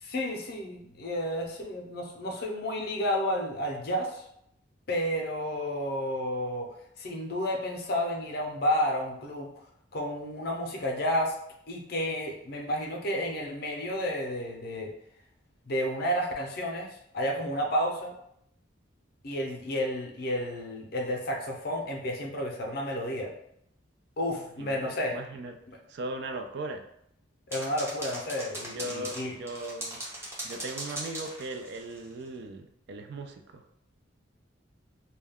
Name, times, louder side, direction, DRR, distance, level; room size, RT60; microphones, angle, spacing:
voice 1, 0.0-4.2 4.9-6.7 7.0-9.5 9.9-11.4 11.7-14.9 15.7-18.2 19.2-23.3 24.2-25.2 27.5-29.3, equal, 55° left, 1 dB, 0.5 m, -31 dB
voice 2, 24.3-25.5 25.9-26.8 28.6-30.0 30.4-33.6, right 2 dB, 60° right, 5 dB, 0.3 m, -38 dB
sound 1, 27.5-32.1, right 1 dB, 15° right, 0.6 m, -39 dB
2.2 x 2.2 x 3.4 m, 0.75 s
head